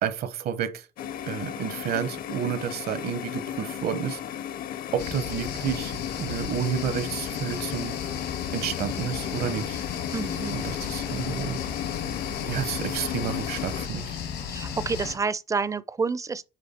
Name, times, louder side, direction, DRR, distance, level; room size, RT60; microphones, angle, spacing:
voice 1, 0.0-0.9 1.3-4.2 4.9-7.9 8.5-9.8 10.5-11.6 12.5-14.2, right 9 dB, 65° right, 1.0 m, -30 dB
sound 1, 1.0-13.9, left 10 dB, 60° left, 0.7 m, -34 dB
sound 2, 5.0-15.2, left 7 dB, 80° left, 1.9 m, -35 dB
voice 2, 10.1-10.6 14.5-16.4, right 4 dB, 20° right, 0.5 m, -29 dB
9.2 x 3.5 x 4.3 m
cardioid pair, 110°, 17 cm